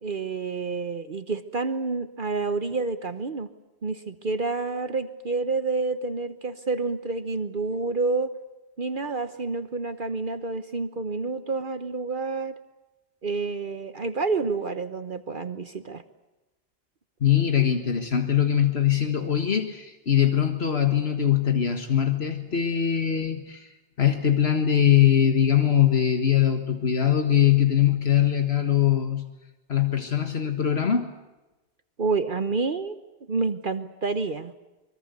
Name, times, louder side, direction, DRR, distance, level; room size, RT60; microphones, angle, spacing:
voice 1, 0.0-3.5 3.8-8.3 8.8-12.5 13.2-16.0 32.0-33.0 33.3-34.5, right 3 dB, 55° right, 10 dB, 1.2 m, -28 dB
voice 2, 17.2-23.7 24.0-29.2 29.7-31.1, left 9 dB, 75° left, 6 dB, 1.9 m, -22 dB
25.0 x 22.5 x 8.2 m, 1.1 s
omnidirectional pair, 1.1 m